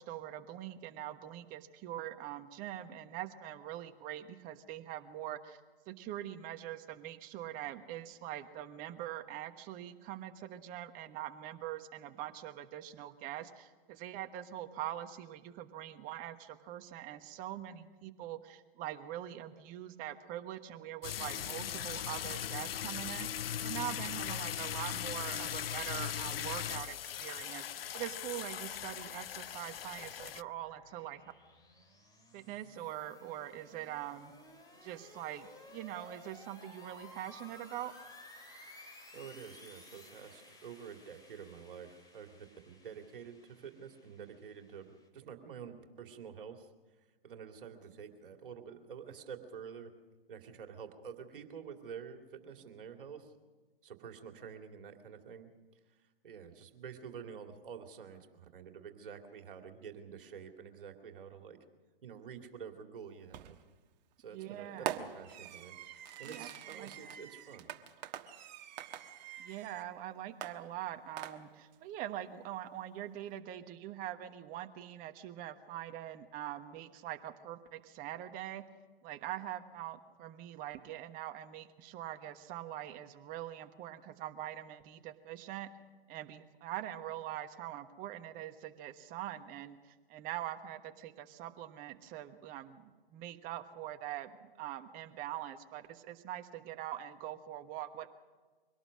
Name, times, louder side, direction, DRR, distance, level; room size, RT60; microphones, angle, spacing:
voice 1, 0.0-5.6 5.9-31.2 32.3-34.3 34.8-37.9 64.3-64.9 66.2-67.1 69.4-78.6 79.0-85.7 86.1-98.1, right 12 dB, 30° right, 8 dB, 1.3 m, -43 dB
sound 1, 21.0-30.4, left 10 dB, 75° left, 0.5 m, -39 dB
sound 2, 29.1-45.1, left 2 dB, 15° left, 3.0 m, -57 dB
voice 2, 39.1-46.7 47.0-49.9 50.3-53.3 53.8-55.5 55.9-61.6 62.0-63.6 64.2-65.8 66.2-67.7, right 7 dB, 65° right, 5 dB, 2.5 m, -48 dB
Fireworks, 63.3-63.7 64.9-69.9 70.4-71.7, right 10 dB, 45° right, 1.4 m, -44 dB
23.5 x 18.0 x 6.4 m, 1.3 s
hypercardioid pair, 125°, 29 cm